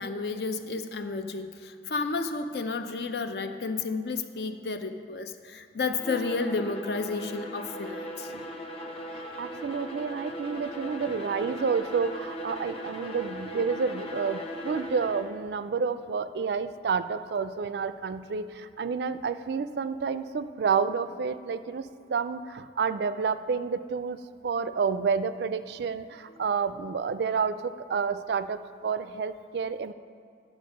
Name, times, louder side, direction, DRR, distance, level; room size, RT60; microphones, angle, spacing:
voice 1, 0.0-8.3, left 4 dB, 65° left, 8 dB, 0.6 m, -32 dB
Bowed string instrument, 5.9-15.4, equal, 35° left, 0.9 m, -38 dB
voice 2, 9.1-24.2 24.4-29.9, right 5 dB, 65° right, 13 dB, 0.4 m, -30 dB
10.5 x 7.2 x 5.1 m, 2.3 s
head